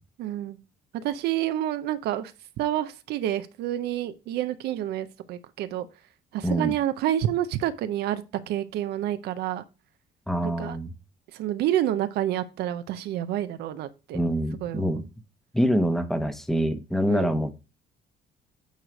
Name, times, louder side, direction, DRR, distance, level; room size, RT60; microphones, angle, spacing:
voice 1, 0.2-0.6 0.9-5.9 6.3-9.6 10.4-10.8 11.3-14.2 14.6-15.0 17.1-17.4, right 12 dB, 75° right, 11 dB, 0.6 m, -29 dB
voice 2, 10.3-10.9 14.1-15.0 15.5-17.5, equal, ahead, 9 dB, 0.9 m, -25 dB
9.2 x 3.1 x 5.0 m, 0.30 s
cardioid pair, 110°, 17 cm